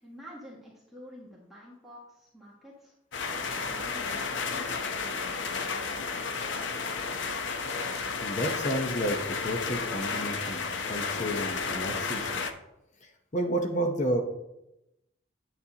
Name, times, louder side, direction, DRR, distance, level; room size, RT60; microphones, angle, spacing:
voice 1, 0.0-2.9 3.5-6.0, equal, ahead, -6 dB, 1.5 m, -50 dB
sound 1, 3.1-12.5, left 5 dB, 70° left, 0.8 m, -32 dB
voice 2, 8.2-12.4 13.0-14.2, right 1 dB, 40° left, 4 dB, 0.9 m, -31 dB
9.5 x 8.4 x 2.9 m, 0.87 s
head